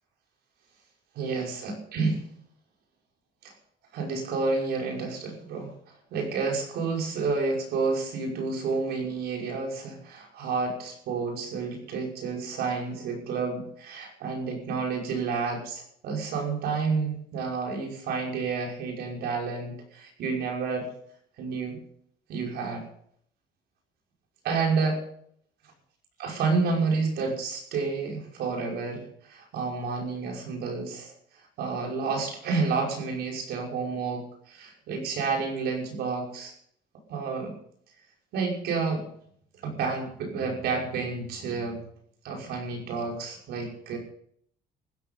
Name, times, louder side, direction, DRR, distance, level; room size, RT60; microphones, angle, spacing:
voice 1, 1.2-2.2 3.4-3.5 3.9-5.7 6.1-20.9 21.4-21.8 22.3-22.9 24.4-25.0 26.2-31.1 31.6-36.5 37.1-37.6 38.3-39.1 39.6-41.8 42.2-44.0, right 4 dB, 75° right, 1 dB, 5.7 m, -30 dB
15.5 x 14.0 x 5.6 m, 0.65 s
cardioid pair, 110°, 17 cm